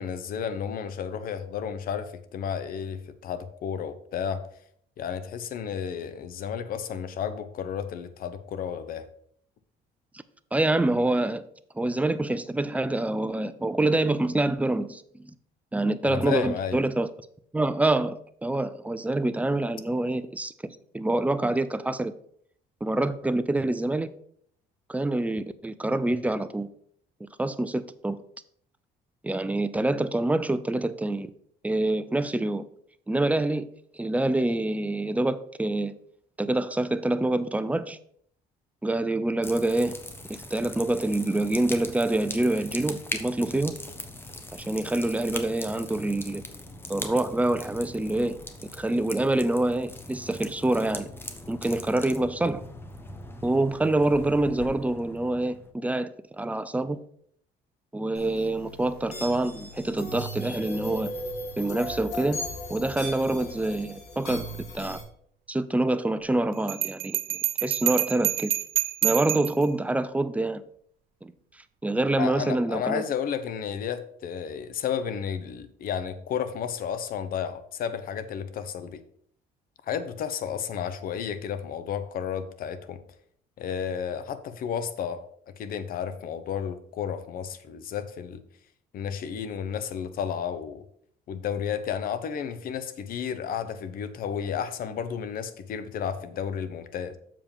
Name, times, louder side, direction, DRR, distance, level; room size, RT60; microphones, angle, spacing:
voice 1, 0.0-4.5 5.0-9.1 16.0-16.8 72.2-79.0 79.9-83.0 83.6-85.2 85.6-88.4 88.9-90.8 91.3-97.2, left 8 dB, 60° left, 12 dB, 0.9 m, -32 dB
voice 2, 10.5-11.4 11.8-15.3 15.7-17.1 17.5-22.1 22.8-24.1 24.9-26.7 27.4-28.2 29.2-31.3 31.6-32.7 33.1-33.7 34.0-35.9 36.4-38.0 38.8-40.0 40.3-43.8 44.5-46.4 46.9-48.4 48.8-51.1 51.5-52.6 53.4-56.1 56.4-57.0 57.9-61.1 61.6-62.4 62.7-64.4 64.7-65.0 65.5-68.5 69.0-70.6 71.2-71.3 71.8-73.0, right 2 dB, 10° right, 12 dB, 0.5 m, -26 dB
sound 1, 39.4-55.7, left 1 dB, 15° left, 1.0 m, -40 dB
sound 2, 58.1-65.0, equal, 85° left, 2.5 m, -37 dB
Bell, 66.7-69.6, right 14 dB, 65° right, 0.5 m, -27 dB
7.2 x 5.0 x 5.3 m, 0.65 s
cardioid pair, 110°, 17 cm